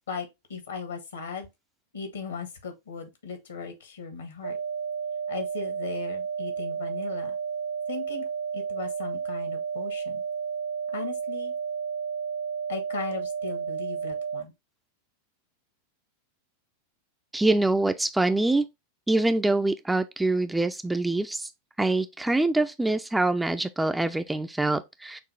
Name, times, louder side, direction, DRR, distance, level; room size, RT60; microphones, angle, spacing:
voice 1, 0.1-1.5 1.9-4.6 5.3-7.3 7.9-8.2 8.5-10.2 10.9-11.5 12.7-14.5, left 5 dB, 65° left, 1.2 m, -37 dB
sound 1, 4.4-14.4, right 7 dB, 90° right, 0.5 m, -32 dB
voice 2, 17.3-18.7 19.1-21.5 21.8-25.2, right 2 dB, 5° right, 0.3 m, -25 dB
5.9 x 2.4 x 3.2 m
figure-of-eight pair, 90°, 0 cm